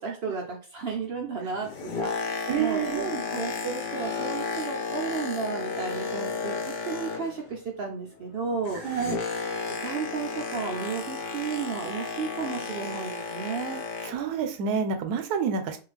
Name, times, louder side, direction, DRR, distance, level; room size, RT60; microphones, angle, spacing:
voice 1, 0.0-8.8 9.7-13.8, right 5 dB, 70° right, 1 dB, 0.6 m, -33 dB
Boat Water vehicle, 1.5-7.6 7.9-14.3 15.0-15.1, left 4 dB, 85° left, 0.4 m, -33 dB
voice 2, 2.5-3.1 8.8-9.2 14.1-15.8, right 6 dB, 85° right, 8 dB, 1.1 m, -28 dB
2.6 x 2.3 x 3.1 m, 0.37 s
omnidirectional pair, 1.6 m